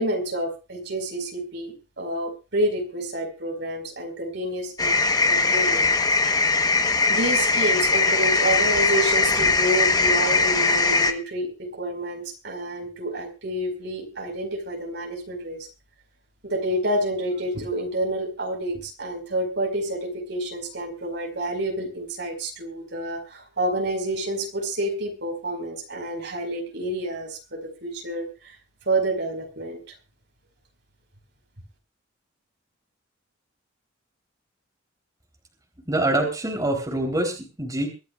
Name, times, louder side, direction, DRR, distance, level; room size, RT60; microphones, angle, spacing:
voice 1, 0.0-4.9 5.2-5.9 7.1-15.7 16.4-28.6 28.9-29.8, right 1 dB, 60° right, 3 dB, 5.1 m, -29 dB
sound 1, 4.8-11.1, left 3 dB, 20° left, 1.1 m, -20 dB
voice 2, 35.9-37.9, right 1 dB, 20° right, 2 dB, 3.6 m, -25 dB
24.0 x 13.5 x 2.5 m, 0.30 s
head